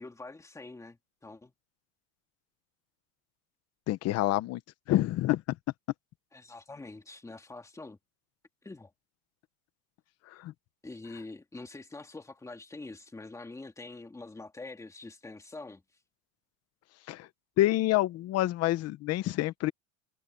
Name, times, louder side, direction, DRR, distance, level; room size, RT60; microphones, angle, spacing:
voice 1, 0.0-1.5 6.3-8.0 8.6-8.9 10.8-15.8, left 3 dB, 5° left, 2.5 m, -45 dB
voice 2, 3.9-4.6 4.9-5.6 10.3-10.5 17.1-17.3 17.6-19.7, left 16 dB, 35° left, 1.0 m, -27 dB
supercardioid pair, 150°, 46 cm